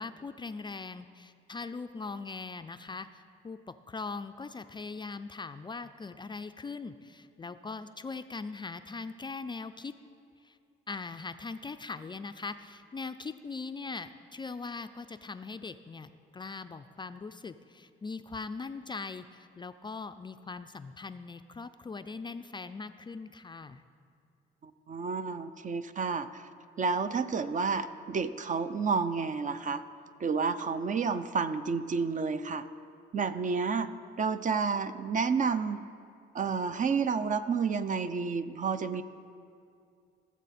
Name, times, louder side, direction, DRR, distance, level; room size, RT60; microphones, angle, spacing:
voice 1, 0.0-10.0 10.4-10.5 10.9-23.8, left 4 dB, 25° left, 10 dB, 0.3 m, -41 dB
voice 2, 24.6-26.4 26.8-29.8 30.2-32.6 33.1-33.9 34.2-35.8 36.3-39.0, right 5 dB, 40° right, 12 dB, 0.5 m, -30 dB
16.5 x 7.3 x 4.2 m, 2.4 s
cardioid pair, 90°, 20 cm